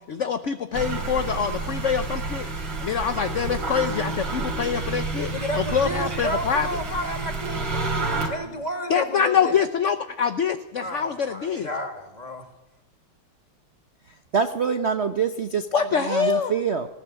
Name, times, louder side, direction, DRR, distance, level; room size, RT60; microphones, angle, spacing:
voice 1, 0.1-2.5 2.8-6.7 8.9-11.7 15.7-16.5, left 7 dB, 55° left, 9 dB, 0.8 m, -25 dB
sound 1, 0.7-8.3, right 3 dB, 80° right, 4.1 m, -29 dB
voice 2, 5.3-9.6 10.8-12.4, left 1 dB, 20° left, 5 dB, 2.2 m, -32 dB
voice 3, 14.3-15.7 16.0-16.9, right 6 dB, 45° right, 7 dB, 0.9 m, -25 dB
20.0 x 15.5 x 8.9 m, 1.0 s
omnidirectional pair, 2.2 m